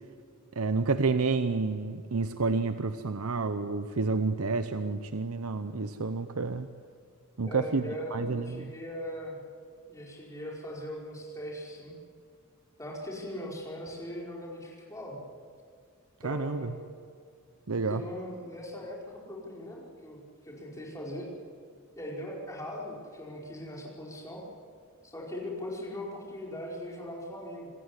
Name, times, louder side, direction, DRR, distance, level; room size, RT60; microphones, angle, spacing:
voice 1, 0.6-6.7 7.4-7.8 8.1-8.7 16.2-16.7 17.7-18.0, right 4 dB, 85° right, 10 dB, 0.8 m, -29 dB
voice 2, 7.4-9.4 9.9-11.9 12.8-15.2 16.2-16.8 17.9-19.0 19.3-21.3 22.0-24.4 25.0-27.7, left 1 dB, 15° left, -3 dB, 5.0 m, -40 dB
27.0 x 15.0 x 9.9 m, 2.2 s
head